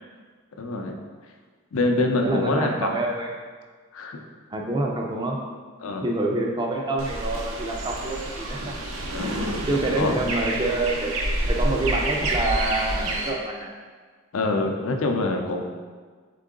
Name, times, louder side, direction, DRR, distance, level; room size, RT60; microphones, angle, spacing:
voice 1, 0.6-0.9 1.7-2.9 3.9-4.2 5.8-6.1 9.1-9.4 9.9-10.1 14.3-15.6, left 2 dB, 75° left, 4 dB, 0.5 m, -25 dB
voice 2, 2.2-3.3 4.5-5.4 6.0-8.7 9.2-11.1 11.5-13.7, right 2 dB, 20° right, 0 dB, 0.4 m, -27 dB
sound 1, 7.0-13.3, right 1 dB, 75° right, 0.6 m, -28 dB
3.8 x 3.6 x 3.7 m, 1.5 s
head